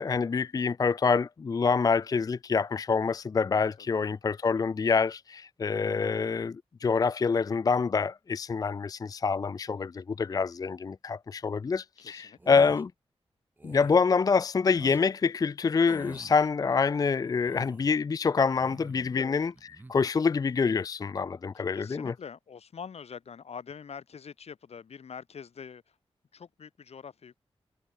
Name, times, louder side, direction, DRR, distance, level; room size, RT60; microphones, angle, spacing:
voice 1, 0.0-12.9 13.6-19.5 19.9-22.1, left 5 dB, 35° left, 0.4 m, -26 dB
voice 2, 12.0-12.6 19.1-19.4 21.5-26.0 26.3-27.3, left 6 dB, 80° left, 2.5 m, -45 dB
sound 1, 12.4-12.8 13.6-14.0 14.7-15.0 15.9-16.5 17.2-17.9 18.5-19.2 19.5-19.9, right 2 dB, 15° right, 0.7 m, -47 dB
wide cardioid pair, 165°, 11 cm